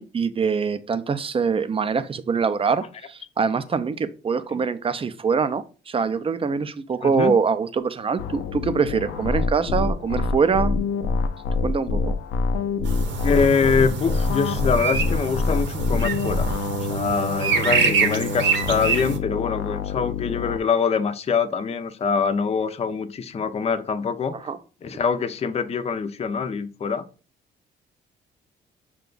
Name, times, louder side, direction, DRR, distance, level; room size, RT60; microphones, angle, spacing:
voice 1, 0.0-10.9 11.6-12.1 24.3-24.6, right 5 dB, 30° right, 0.4 m, -24 dB
voice 2, 7.0-7.4 13.2-16.5 16.8-24.3 24.8-27.0, left 5 dB, 30° left, 0.5 m, -24 dB
sound 1, 8.2-20.6, left 4 dB, 90° left, 0.5 m, -26 dB
sound 2, 12.8-19.2, right 5 dB, 65° right, 0.8 m, -26 dB
5.9 x 2.3 x 3.8 m
cardioid pair, 90°, 20 cm